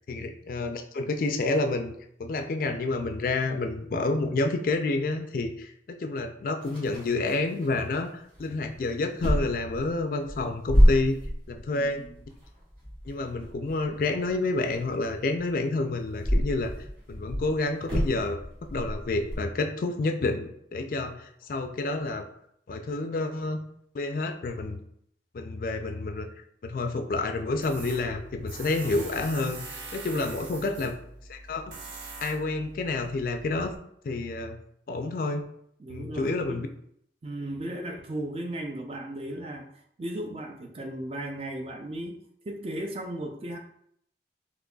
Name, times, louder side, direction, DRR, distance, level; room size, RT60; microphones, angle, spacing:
voice 1, 0.0-1.9 2.2-8.1 8.4-11.2 11.5-12.0 13.1-16.7 17.1-18.4 18.7-22.2 22.7-23.6 23.9-24.8 25.3-26.3 26.6-30.9 31.3-31.6 32.2-33.8 34.0-34.6 34.9-35.4 35.9-36.7, left 2 dB, 50° left, 6 dB, 0.3 m, -29 dB
sound 1, 6.6-8.0 8.3-8.8 9.2-15.5 16.1-19.4, equal, 55° right, 1.5 m, -27 dB
voice 2, 11.7-12.3 30.1-30.2 35.8-36.7 37.2-39.7 40.0-43.6, right 1 dB, 35° right, 4 dB, 0.4 m, -36 dB
Tools, 27.6-33.8, right 3 dB, 85° right, 0.5 m, -43 dB
3.8 x 2.9 x 2.3 m, 0.70 s
head